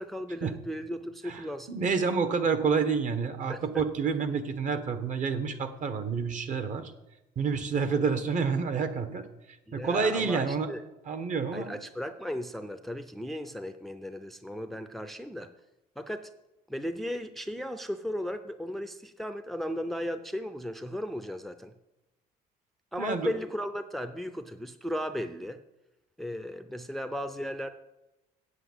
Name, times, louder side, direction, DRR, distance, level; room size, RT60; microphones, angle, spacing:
voice 1, 0.0-1.7 3.5-3.6 9.7-10.8 11.5-15.5 16.0-16.3 16.7-21.7 22.9-25.6 26.2-27.7, equal, ahead, 9 dB, 0.5 m, -36 dB
voice 2, 1.3-6.9 7.4-9.3 9.7-10.7 11.1-11.8 23.0-23.3, right 5 dB, 50° right, 10 dB, 1.3 m, -29 dB
8.1 x 8.0 x 8.0 m, 0.97 s
cardioid pair, 110°, 17 cm